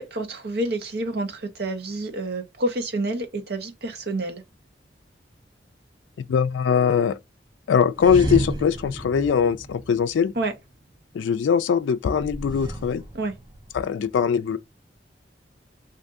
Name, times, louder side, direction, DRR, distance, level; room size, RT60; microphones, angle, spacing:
voice 1, 0.0-4.4 10.4-10.5 13.1-13.3, right 2 dB, 55° right, 0.8 m, -28 dB
voice 2, 6.2-7.2 7.7-10.3 11.1-13.0 13.7-14.6, left 7 dB, 80° left, 0.3 m, -21 dB
sound 1, 8.0-10.6 12.2-13.9, right 2 dB, 25° right, 0.7 m, -32 dB
2.6 x 2.6 x 3.5 m
head